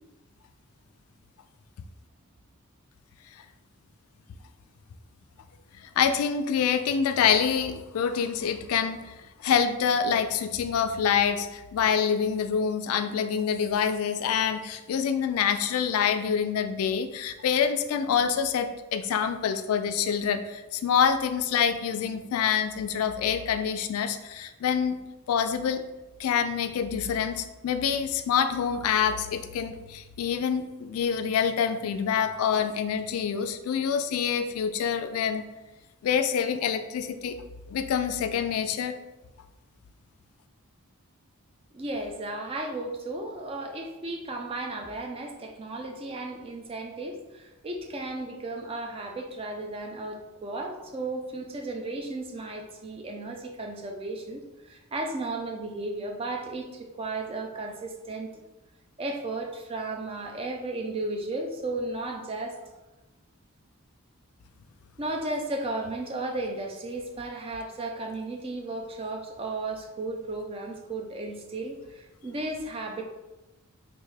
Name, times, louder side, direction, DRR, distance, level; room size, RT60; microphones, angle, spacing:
voice 1, 5.7-25.0 25.3-25.8 26.2-35.4 36.0-37.4 37.7-39.0, left 7 dB, 85° left, 9 dB, 0.3 m, -26 dB
voice 2, 41.7-58.3 59.0-62.6 65.0-73.0, right 2 dB, 25° right, 3 dB, 0.4 m, -34 dB
3.4 x 2.5 x 3.2 m, 1.1 s
head